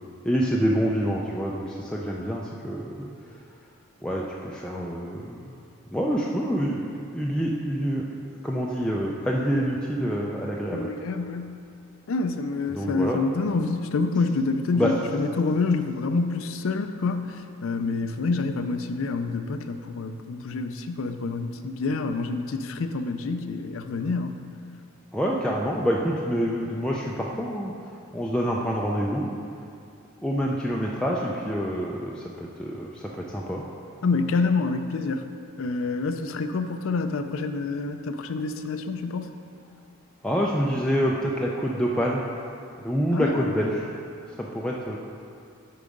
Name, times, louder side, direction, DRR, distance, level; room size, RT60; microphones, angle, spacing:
voice 1, 0.2-3.4 4.0-5.5 5.9-6.9 7.1-8.0 8.4-10.9 12.7-13.2 14.7-14.9 25.1-27.7 28.1-29.3 30.2-33.7 40.2-42.4 42.8-43.9 44.3-45.0, equal, 5° left, -4 dB, 0.4 m, -27 dB
voice 2, 10.7-11.6 12.1-24.4 34.0-35.2 35.6-39.2 43.1-43.5, left 3 dB, 70° left, 8 dB, 0.4 m, -27 dB
8.5 x 4.7 x 5.3 m, 2.4 s
head